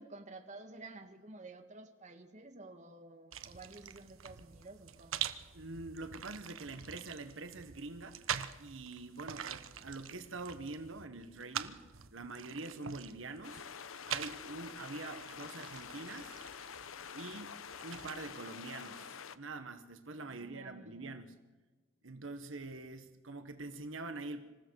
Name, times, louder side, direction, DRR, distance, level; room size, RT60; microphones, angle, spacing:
voice 1, 0.0-5.3 20.3-21.2, right 2 dB, 35° right, 6 dB, 1.8 m, -52 dB
sound 1, 3.3-18.1, right 9 dB, 90° right, 1.1 m, -45 dB
voice 2, 5.5-8.2 8.6-11.8 12.1-13.7 14.1-16.4 17.1-21.3 22.0-24.4, right 3 dB, 70° right, 8 dB, 1.4 m, -45 dB
sound 2, 13.4-19.4, left 7 dB, 90° left, 0.9 m, -47 dB
26.5 x 15.0 x 6.5 m, 1.3 s
head